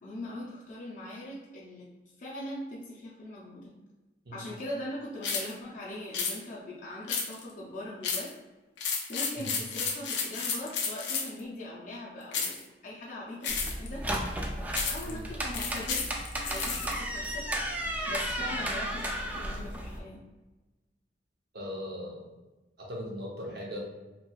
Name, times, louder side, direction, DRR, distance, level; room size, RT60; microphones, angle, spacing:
voice 1, 0.0-1.9 2.2-3.8 4.3-8.3 9.1-14.1 14.9-17.5 18.1-20.3, left 1 dB, 45° left, -6 dB, 0.5 m, -41 dB
sound 1, 5.2-5.5 6.1-6.4 7.1-7.5 8.0-8.3 8.8-11.4 12.3-12.6 13.4-13.9 14.7-15.1 15.5-16.9, left 5 dB, 90° left, 0.5 m, -32 dB
sound 2, 13.5-20.0, right 1 dB, 10° right, 0.3 m, -34 dB
voice 2, 21.5-22.2 22.8-23.8, equal, 65° right, -3 dB, 0.8 m, -39 dB
3.1 x 2.8 x 2.3 m, 1.1 s
head